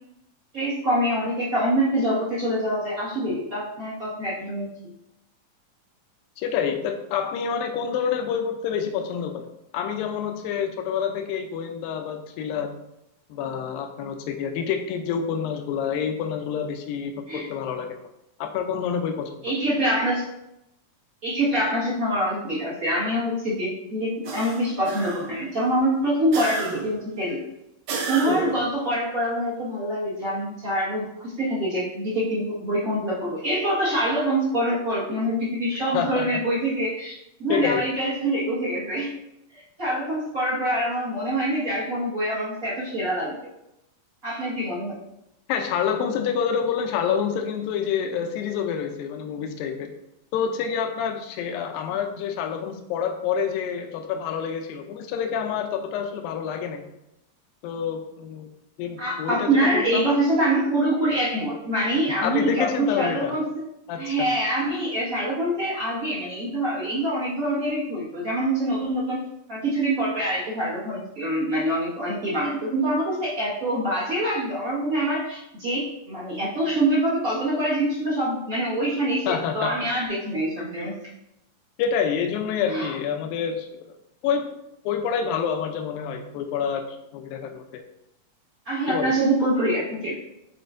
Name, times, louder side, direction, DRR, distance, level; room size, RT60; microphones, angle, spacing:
voice 1, 0.5-4.7 17.3-17.5 19.4-20.2 21.2-27.4 27.9-39.1 39.5-43.4 44.2-45.0 59.0-63.6 64.0-69.2 69.5-81.0 82.7-82.9 88.6-90.1, right 1 dB, 40° right, -8 dB, 1.2 m, -25 dB
voice 2, 6.4-9.4 9.7-12.7 13.3-18.0 18.4-19.5 35.9-36.3 37.5-37.8 45.5-49.9 50.3-56.8 57.6-58.5 58.8-60.1 62.2-63.4 63.9-64.2 79.3-79.7 81.8-83.8 84.2-84.5 84.9-86.8 87.1-87.6 88.9-89.1, left 7 dB, 85° left, 5 dB, 2.4 m, -27 dB
sound 1, 24.2-25.5 26.3-27.1 27.9-28.7, right 4 dB, 70° right, 1.9 m, -31 dB
8.8 x 4.3 x 2.6 m, 0.84 s
omnidirectional pair, 4.1 m